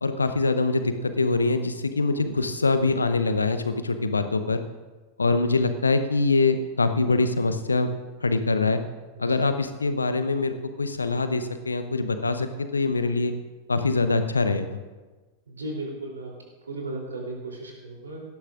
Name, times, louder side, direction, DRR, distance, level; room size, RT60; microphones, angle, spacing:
voice 1, 0.0-4.6 5.2-7.9 8.2-8.8 9.2-13.3 13.7-14.8, left 3 dB, 75° left, 9 dB, 0.8 m, -24 dB
voice 2, 15.5-16.3 16.7-18.2, right 2 dB, 75° right, 0 dB, 3.2 m, -35 dB
17.5 x 13.0 x 2.5 m, 1.3 s
figure-of-eight pair, 90°, 0 cm